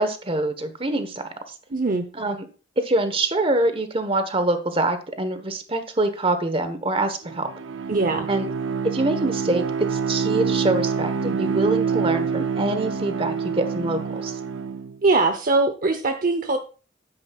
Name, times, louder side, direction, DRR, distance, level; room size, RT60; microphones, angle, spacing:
voice 1, 0.0-1.3 2.1-2.5 2.8-7.5 8.3-8.5 8.9-9.6 9.9-14.4, right 2 dB, 30° right, 9 dB, 1.2 m, -25 dB
voice 2, 1.7-2.1 7.9-8.3 15.0-16.6, right 3 dB, 45° right, 7 dB, 0.8 m, -21 dB
Bowed string instrument, 7.2-15.0, right 6 dB, 85° right, 0.6 m, -26 dB
12.0 x 9.6 x 2.4 m, 0.36 s
head